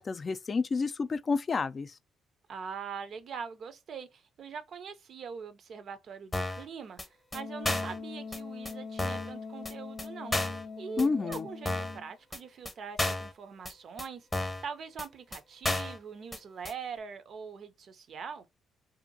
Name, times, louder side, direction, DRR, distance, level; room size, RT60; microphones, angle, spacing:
voice 1, 0.0-1.9 11.0-11.5, left 4 dB, 45° left, 0.3 m, -30 dB
voice 2, 2.5-18.5, right 6 dB, 60° right, 0.5 m, -43 dB
sound 1, 6.3-6.7 7.0-7.1 7.3-7.4 7.7-8.0 8.3-8.4 8.7-8.8 9.0-9.3 9.7-9.8 10.0-10.1 10.3-10.6 11.0-11.1 11.3-11.4 11.7-12.0 12.3-12.4 12.7-12.8 13.0-13.3 13.7-13.8 14.0-14.1 14.3-14.7 15.0-15.1 15.3-15.4 15.6-16.0 16.3-16.4 16.7-16.8, left 2 dB, 20° left, 0.8 m, -32 dB
Wind instrument woodwind instrument, 7.3-12.1, left 4 dB, 85° left, 0.6 m, -42 dB
2.7 x 2.5 x 2.6 m
supercardioid pair, 55°, 0 cm